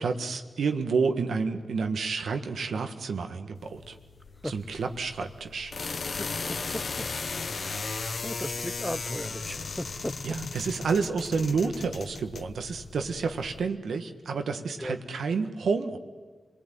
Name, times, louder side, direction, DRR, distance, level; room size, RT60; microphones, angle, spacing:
voice 1, 0.0-3.9 4.5-5.7 10.2-16.0, right 5 dB, 85° right, 6 dB, 1.6 m, -29 dB
sound 1, 3.5-13.6, left 4 dB, 60° left, 1.0 m, -36 dB
voice 2, 6.1-7.1 7.6-10.4 11.6-11.7 14.8-15.0, equal, 10° left, 13 dB, 1.0 m, -37 dB
26.5 x 19.5 x 9.2 m, 1.4 s
cardioid pair, 45°, 0 cm